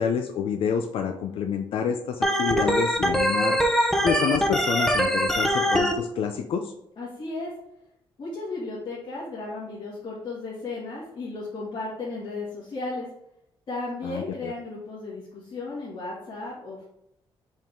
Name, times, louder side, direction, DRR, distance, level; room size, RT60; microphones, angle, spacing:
voice 1, 0.0-3.6 4.0-6.7 14.0-14.5, left 7 dB, 75° left, 6 dB, 0.5 m, -28 dB
Organ, 2.2-5.9, equal, 5° left, 0.8 m, -23 dB
voice 2, 7.0-7.5 8.2-13.1 13.7-16.9, left 3 dB, 55° left, -8 dB, 2.0 m, -34 dB
5.4 x 5.4 x 3.7 m, 0.81 s
cardioid pair, 135°, 9 cm